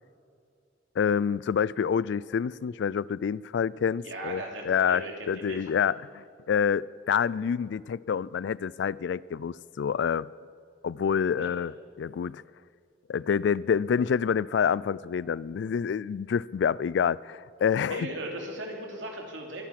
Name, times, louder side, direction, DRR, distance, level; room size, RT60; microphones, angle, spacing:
voice 1, 1.0-10.3 10.8-11.7 12.0-12.4 13.1-18.1, left 7 dB, 70° left, 0.3 m, -27 dB
voice 2, 4.0-5.6 11.4-11.5 17.9-19.7, right 1 dB, 85° right, 3.1 m, -37 dB
23.5 x 10.5 x 5.9 m
head